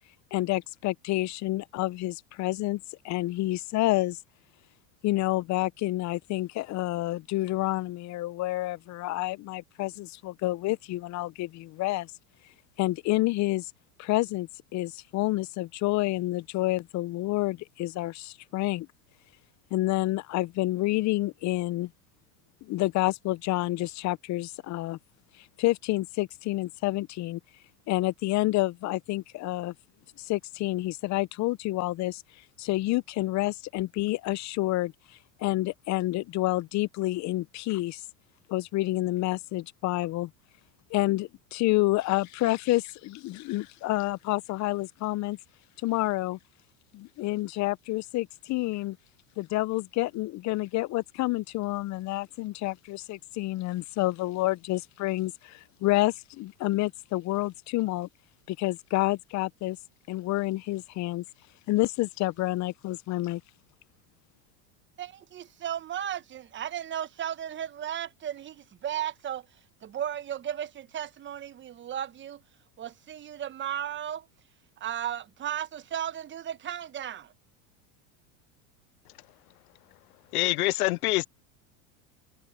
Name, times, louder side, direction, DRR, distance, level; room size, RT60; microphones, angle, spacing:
voice 1, 0.3-4.2 5.0-12.1 12.8-13.7 14.0-18.9 19.7-21.9 22.6-25.0 25.4-27.4 27.9-29.7 30.2-32.2 32.6-34.9 35.4-38.0 38.5-40.3 40.9-45.4 45.8-46.4 46.9-49.0 49.4-58.1 58.5-59.8 60.1-61.2 61.7-63.4, left 18 dB, 40° left, 0.7 m, -29 dB
voice 2, 65.0-69.5 69.8-72.4 72.8-74.3 74.8-77.3, right 10 dB, 25° right, 1.0 m, -35 dB
voice 3, 80.3-81.3, left 20 dB, 90° left, 0.6 m, -25 dB
supercardioid pair, 110°, 43 cm